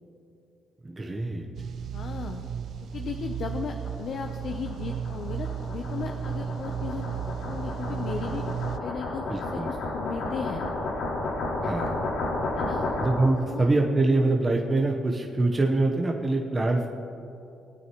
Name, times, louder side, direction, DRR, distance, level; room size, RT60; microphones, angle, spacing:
voice 1, 0.8-1.5 9.3-9.7 11.6-12.0 13.0-16.9, right 2 dB, 25° right, 0 dB, 1.1 m, -24 dB
sound 1, 1.5-8.8, right 8 dB, 65° right, 0.5 m, -34 dB
voice 2, 1.9-2.4 2.9-8.4 8.8-9.2 9.5-10.6 12.5-12.9 13.5-13.7, left 6 dB, 60° left, 4 dB, 0.8 m, -36 dB
sound 2, 3.5-13.5, left 2 dB, 85° left, 2.6 m, -32 dB
20.0 x 9.2 x 3.1 m, 2.6 s
cardioid pair, 90°, 0 cm